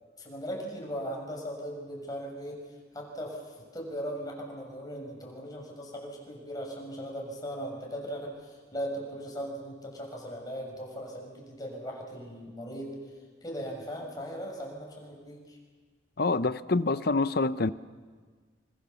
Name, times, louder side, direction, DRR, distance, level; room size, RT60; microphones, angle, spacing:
voice 1, 0.0-2.6 2.9-13.0 13.4-15.6, equal, 20° left, 6.3 m, -38 dB
voice 2, 16.2-17.7, left 3 dB, 55° left, 0.8 m, -26 dB
27.0 x 25.0 x 7.1 m
head